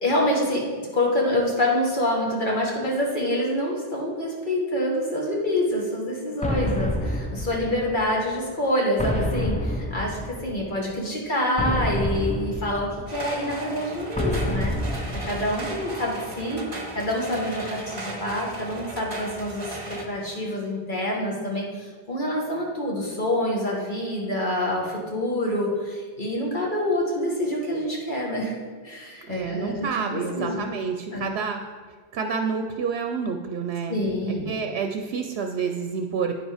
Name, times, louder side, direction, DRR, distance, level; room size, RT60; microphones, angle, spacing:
voice 1, 0.0-14.8 15.2-16.6 16.9-28.5 28.8-30.7 31.1-31.3 33.9-34.5, left 1 dB, 50° left, -2 dB, 1.5 m, -26 dB
sound 1, 6.4-8.2 9.0-10.7 11.6-13.4 14.2-15.9, left 1 dB, 15° left, 0.3 m, -28 dB
sound 2, 13.1-20.1, right 2 dB, 35° right, 0.9 m, -36 dB
voice 2, 29.3-31.6 32.1-34.0 34.5-36.3, right 5 dB, 75° right, 5 dB, 0.8 m, -28 dB
9.1 x 5.2 x 4.8 m, 1.5 s
omnidirectional pair, 1.1 m